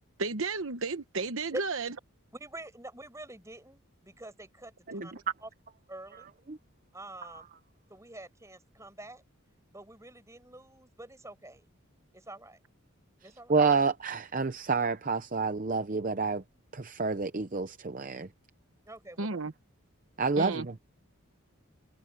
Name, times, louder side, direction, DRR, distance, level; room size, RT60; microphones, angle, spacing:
voice 1, 0.2-1.9 4.9-5.0 19.2-19.5 20.4-20.7, right 3 dB, 65° right, 1.0 m, -33 dB
voice 2, 2.3-5.1 5.4-5.5 5.9-6.4 6.9-7.5 7.9-9.2 9.7-11.7 12.1-12.6 13.2-13.6 18.8-19.4, right 1 dB, 15° right, 5.3 m, -45 dB
voice 3, 13.5-16.4 16.7-18.3 20.2-20.7, right 4 dB, 40° right, 0.7 m, -28 dB
head